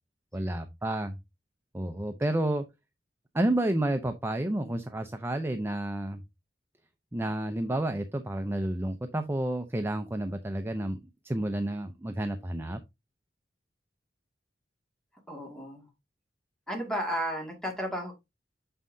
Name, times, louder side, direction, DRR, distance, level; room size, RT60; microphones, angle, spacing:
voice 1, 0.3-1.2 1.7-2.6 3.3-6.2 7.1-11.0 11.2-12.8, right 1 dB, 15° right, 0.5 m, -30 dB
voice 2, 15.3-15.9 16.7-18.2, equal, 5° left, 2.1 m, -33 dB
7.3 x 5.6 x 2.6 m
head